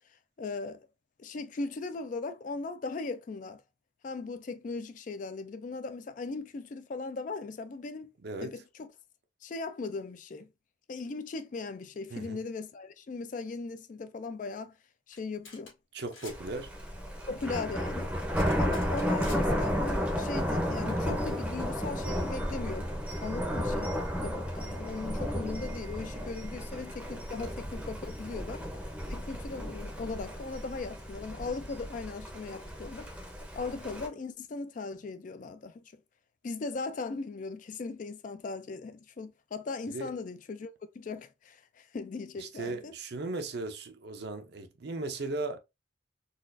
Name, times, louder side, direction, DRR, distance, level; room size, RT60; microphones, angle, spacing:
voice 1, 0.4-0.9 1.2-3.6 4.0-8.1 8.4-8.9 9.4-10.5 10.9-14.8 15.1-15.7 17.3-18.1 18.6-22.9 23.2-28.7 29.1-33.1 33.6-35.8 36.4-42.9, left 3 dB, 40° left, 0.3 m, -38 dB
voice 2, 8.2-8.5 12.1-12.4 15.9-16.7 39.9-40.1 42.4-45.6, right 2 dB, 55° right, 0.6 m, -37 dB
sound 1, 15.1-15.2 15.4-15.7 16.0-16.4 18.4-19.4, left 4 dB, 85° left, 1.7 m, -47 dB
Thunder, 16.3-34.1, equal, 5° right, 0.6 m, -33 dB
4.0 x 2.4 x 2.5 m
head